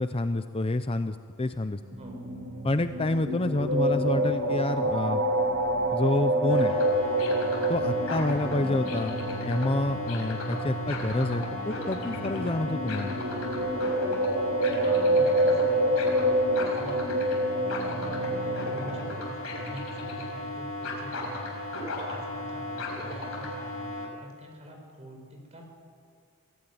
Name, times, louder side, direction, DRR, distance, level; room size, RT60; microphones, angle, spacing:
voice 1, 0.0-1.8 2.6-5.2 5.9-6.8 7.7-13.2, left 2 dB, 25° left, 10 dB, 0.6 m, -28 dB
sound 1, 1.8-19.1, right 1 dB, 70° right, 3.4 m, -28 dB
sound 2, 6.5-24.1, left 2 dB, 75° left, 5.4 m, -35 dB
voice 2, 14.8-17.1 17.8-21.6 22.1-25.6, right 1 dB, 30° right, 2 dB, 4.8 m, -45 dB
23.5 x 16.5 x 9.4 m, 2.2 s
head